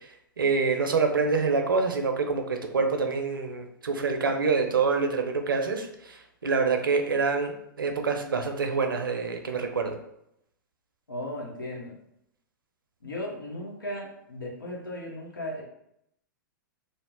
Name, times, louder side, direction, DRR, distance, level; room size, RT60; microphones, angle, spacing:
voice 1, 0.4-10.0, right 4 dB, 90° right, 5 dB, 0.5 m, -26 dB
voice 2, 11.1-11.9 13.0-15.6, left 1 dB, 90° left, -3 dB, 0.9 m, -36 dB
2.7 x 2.0 x 3.6 m, 0.77 s
hypercardioid pair, 115°, 11 cm